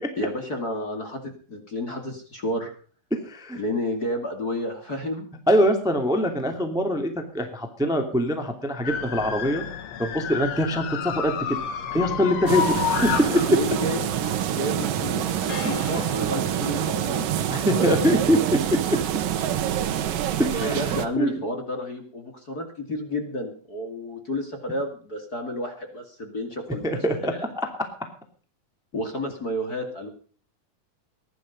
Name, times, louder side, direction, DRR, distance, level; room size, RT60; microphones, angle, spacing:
voice 1, 0.2-2.7 3.5-5.3 11.9-12.3 13.3-14.0 14.5-18.2 20.5-26.9 27.2-27.5 28.9-30.1, left 1 dB, 30° left, 4 dB, 2.5 m, -31 dB
voice 2, 3.2-3.6 5.5-9.6 10.0-11.6 11.9-13.1 17.5-18.8 20.4-21.4 26.8-27.7, equal, ahead, 5 dB, 1.8 m, -24 dB
sound 1, 8.8-14.4 15.5-17.1, left 8 dB, 60° left, 2.2 m, -31 dB
sound 2, 12.5-21.1, right 10 dB, 70° right, 2.8 m, -26 dB
19.5 x 11.5 x 5.3 m, 0.41 s
omnidirectional pair, 4.2 m